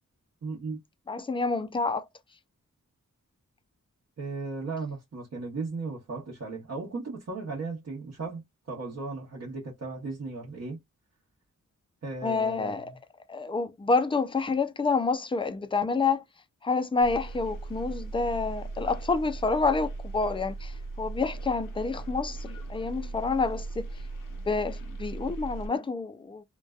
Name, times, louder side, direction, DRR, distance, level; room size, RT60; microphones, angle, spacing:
voice 1, 0.4-0.8 4.2-10.8 12.0-13.0, right 3 dB, 50° right, 0.9 m, -36 dB
voice 2, 1.1-2.1 12.2-12.9 13.3-16.2 16.6-23.9 24.5-26.5, left 4 dB, 15° left, 0.3 m, -28 dB
sound 1, 17.0-25.7, right 3 dB, 85° left, 0.7 m, -38 dB
2.5 x 2.2 x 2.2 m
wide cardioid pair, 155°, 32 cm